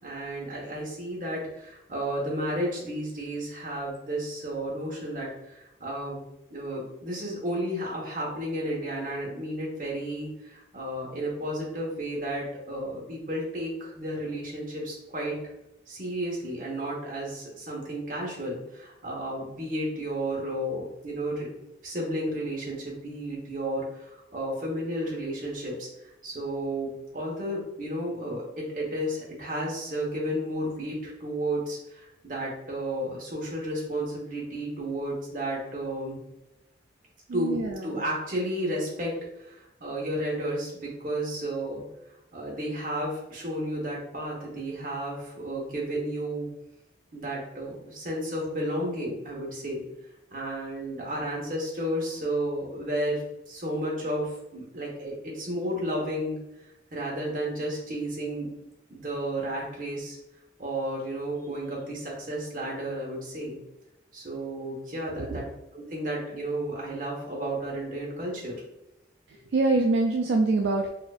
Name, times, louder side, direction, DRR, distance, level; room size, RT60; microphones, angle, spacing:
voice 1, 0.0-6.2 6.5-15.4 15.9-21.6 21.8-25.9 26.2-36.2 37.3-37.6 37.8-41.8 42.3-46.5 47.1-49.8 50.3-56.4 56.9-58.5 58.9-60.2 60.6-63.6 64.1-65.4 65.7-68.5, right 1 dB, 45° right, -3 dB, 1.1 m, -32 dB
voice 2, 37.3-38.0 65.2-65.4 69.3-70.9, right 3 dB, 70° right, 1 dB, 0.3 m, -25 dB
4.2 x 2.6 x 2.4 m, 0.89 s
head